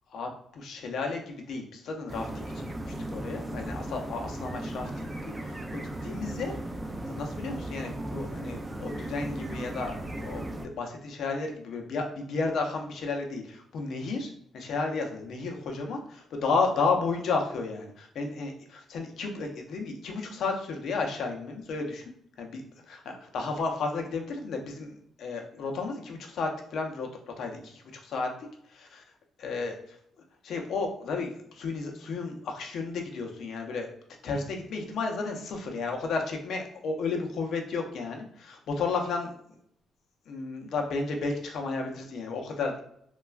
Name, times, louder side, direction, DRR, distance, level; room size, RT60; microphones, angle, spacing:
voice 1, 0.1-5.1 5.4-6.5 7.1-22.0 22.4-22.6 22.9-28.3 28.7-29.0 29.4-30.0 30.4-33.9 34.2-39.4 40.3-42.8, left 4 dB, 70° left, 3 dB, 0.6 m, -33 dB
sound 1, 2.1-10.7, right 1 dB, 20° right, 0.4 m, -36 dB
3.2 x 2.2 x 2.3 m, 0.70 s
cardioid pair, 90°, 0 cm